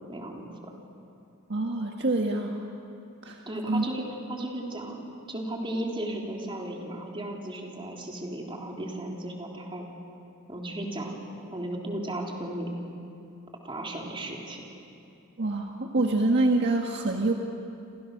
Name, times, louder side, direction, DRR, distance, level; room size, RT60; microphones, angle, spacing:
voice 1, 0.1-0.7 3.5-4.0 4.3-9.8 10.5-11.2 11.5-12.7 13.6-14.6, right 1 dB, 25° right, 0 dB, 3.6 m, -35 dB
voice 2, 1.5-2.6 3.2-3.8 15.4-17.3, right 2 dB, 55° right, 2 dB, 1.7 m, -26 dB
30.0 x 26.5 x 6.7 m, 2.6 s
head